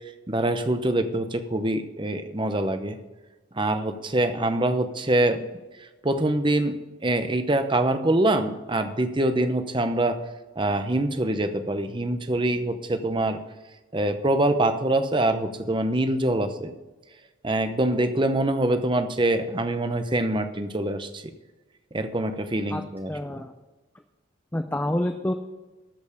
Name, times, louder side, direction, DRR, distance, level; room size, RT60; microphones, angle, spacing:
voice 1, 0.3-3.0 3.6-5.5 6.0-6.8 7.0-10.2 10.6-13.4 13.9-16.7 17.4-21.2 21.9-23.4, right 1 dB, 25° right, 8 dB, 0.8 m, -24 dB
voice 2, 23.1-23.5 24.5-25.3, left 1 dB, 10° left, 6 dB, 0.4 m, -27 dB
13.0 x 5.4 x 6.8 m, 1.2 s
head